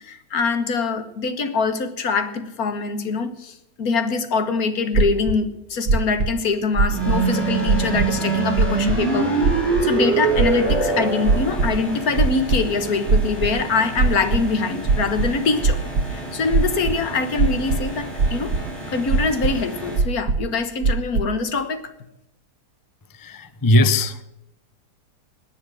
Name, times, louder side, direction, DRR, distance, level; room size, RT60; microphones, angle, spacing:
voice 1, 0.0-15.8 16.1-18.5 18.9-21.8, left 4 dB, 60° left, 10 dB, 1.6 m, -24 dB
sound 1, 4.9-5.4 5.9-6.3 6.8-7.3 7.7-8.1 8.6-9.0 9.4-9.8 10.3-10.8 11.3-11.8 12.2-12.6 13.1-13.6 14.0-14.4 14.9-16.1 16.5-17.0 17.4-17.9 18.2-18.6 19.1-19.5 20.0-20.5 20.8-21.3, right 4 dB, 90° right, 1.9 m, -20 dB
sound 2, 6.9-20.0, right 3 dB, ahead, 5.0 m, -26 dB
voice 2, 23.1-24.2, left 1 dB, 25° left, 13 dB, 0.4 m, -19 dB
17.5 x 10.0 x 6.3 m, 0.84 s
omnidirectional pair, 1.8 m